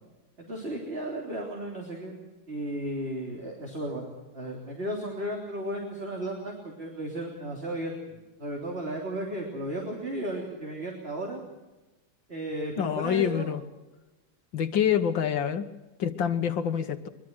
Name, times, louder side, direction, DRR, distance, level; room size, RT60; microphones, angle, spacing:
voice 1, 0.4-2.1 2.5-11.4 12.3-13.5 14.9-15.0, right 1 dB, 30° right, 0 dB, 3.7 m, -34 dB
voice 2, 12.8-13.6 14.5-15.6 16.0-17.1, left 8 dB, 70° left, 9 dB, 1.9 m, -26 dB
23.0 x 22.5 x 6.2 m, 1.1 s
omnidirectional pair, 2.2 m